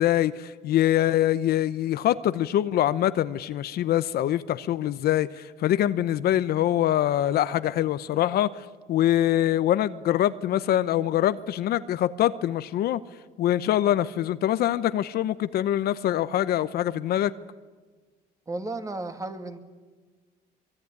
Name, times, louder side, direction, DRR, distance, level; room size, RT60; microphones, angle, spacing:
voice 1, 0.0-13.0 13.4-17.3, left 12 dB, 65° left, 0.9 m, -24 dB
voice 2, 18.5-19.6, right 2 dB, 20° right, 2.3 m, -33 dB
24.0 x 22.5 x 9.7 m
cardioid pair, 110°, 17 cm